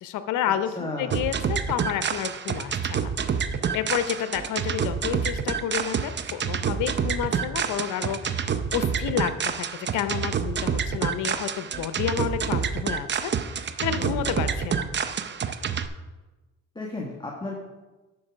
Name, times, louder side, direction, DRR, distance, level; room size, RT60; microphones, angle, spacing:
voice 1, 0.0-0.7 1.0-3.1 3.7-9.7 9.9-13.3 13.8-15.0, left 10 dB, 80° left, 11 dB, 0.7 m, -30 dB
voice 2, 0.8-1.2 14.0-14.3 16.7-17.6, left 2 dB, 15° left, -1 dB, 1.5 m, -34 dB
sound 1, 1.1-15.9, right 7 dB, 35° right, 0.7 m, -28 dB
11.0 x 4.6 x 6.0 m, 1.2 s
cardioid pair, 90°, 30 cm